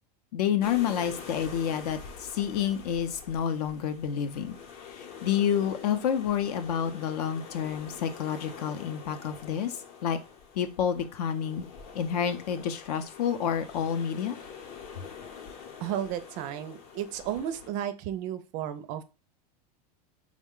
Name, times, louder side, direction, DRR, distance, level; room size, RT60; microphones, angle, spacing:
voice 1, 0.3-4.6 4.8-9.7 10.0-10.2 10.5-11.6 11.9-14.4, left 8 dB, 75° left, 10 dB, 0.6 m, -29 dB
sound 1, 0.6-17.7, left 6 dB, 40° left, 0.7 m, -46 dB
voice 2, 15.8-19.0, right 10 dB, 40° right, 11 dB, 0.4 m, -33 dB
3.6 x 2.1 x 3.6 m, 0.30 s
supercardioid pair, 145°, 20 cm